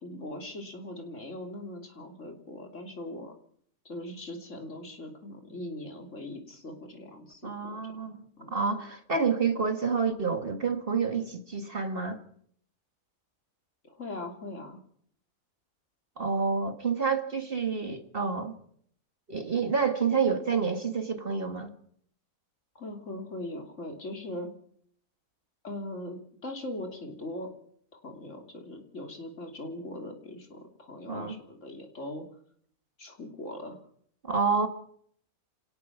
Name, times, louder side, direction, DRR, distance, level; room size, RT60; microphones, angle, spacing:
voice 1, 0.0-3.3 3.8-7.9 8.4-8.6 13.8-14.8 22.7-24.5 25.6-27.5 27.9-32.2 33.0-33.8, left 1 dB, 55° left, 3.4 m, -40 dB
voice 2, 7.4-8.2 8.5-12.2 16.2-18.5 19.3-21.7 31.1-31.4 34.2-34.7, right 5 dB, 40° right, 2.0 m, -28 dB
27.0 x 18.0 x 6.0 m
omnidirectional pair, 1.6 m